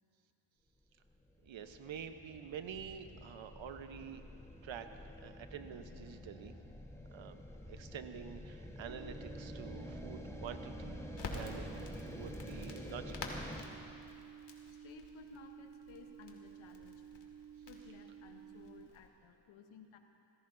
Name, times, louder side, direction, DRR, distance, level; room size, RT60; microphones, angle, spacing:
sound 1, 1.1-13.6, left 1 dB, 5° left, 1.3 m, -48 dB
voice 1, 1.4-4.2 4.6-6.5 7.1-7.4 7.7-11.0 11.3-13.4, right 7 dB, 75° right, 8 dB, 1.1 m, -48 dB
sound 2, 8.9-18.9, right 9 dB, 25° right, 0.4 m, -54 dB
Crackle, 11.2-19.1, left 3 dB, 60° left, 2.2 m, -50 dB
voice 2, 14.7-17.1 17.6-20.0, left 6 dB, 85° left, 5 dB, 1.1 m, -57 dB
26.0 x 16.5 x 2.7 m, 2.8 s
cardioid pair, 60°, 47 cm